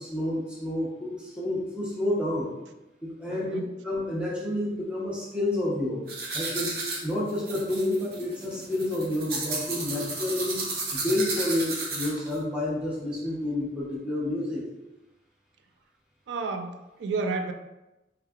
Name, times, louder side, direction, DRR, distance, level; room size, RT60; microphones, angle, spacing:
voice 1, 0.0-2.5 3.0-6.0 6.3-6.7 7.0-10.6 10.9-14.6, left 1 dB, 5° right, -6 dB, 0.7 m, -29 dB
voice 2, 3.3-3.7 16.3-17.5, right 4 dB, 85° right, 7 dB, 0.3 m, -31 dB
sound 1, 6.1-12.4, right 3 dB, 55° right, 0.7 m, -33 dB
3.4 x 3.1 x 2.3 m, 1.0 s
head